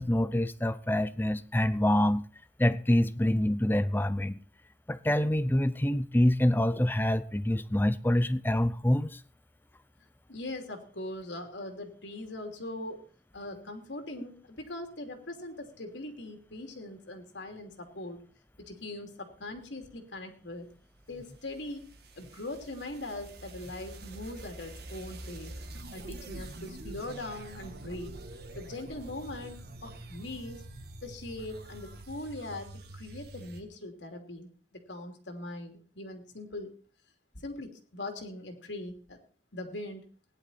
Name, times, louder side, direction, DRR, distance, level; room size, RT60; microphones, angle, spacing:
voice 1, 0.0-2.2 2.6-4.4 4.9-9.2, left 1 dB, 10° left, 0.6 m, -26 dB
voice 2, 10.3-13.0 13.3-18.2 18.6-20.6 21.1-21.8 22.2-25.5 25.9-28.1 28.5-30.6 31.0-32.7 32.9-36.7 37.3-39.2 39.5-40.0, left 2 dB, 85° left, 3.0 m, -41 dB
sound 1, 20.8-33.6, right 1 dB, 60° right, 1.8 m, -46 dB
17.0 x 11.0 x 4.3 m
head